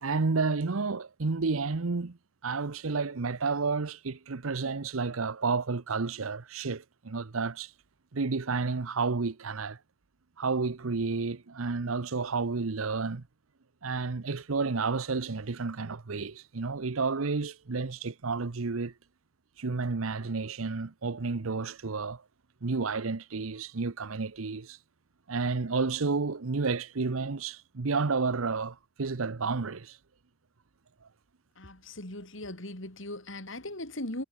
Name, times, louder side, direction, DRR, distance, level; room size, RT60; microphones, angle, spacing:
voice 1, 0.0-2.2 2.4-7.7 8.1-9.8 10.4-13.2 13.8-18.9 19.6-22.2 22.6-24.8 25.3-30.0, right 4 dB, 85° right, 0.8 m, -31 dB
voice 2, 31.6-34.2, left 1 dB, 70° left, 5.0 m, -39 dB
head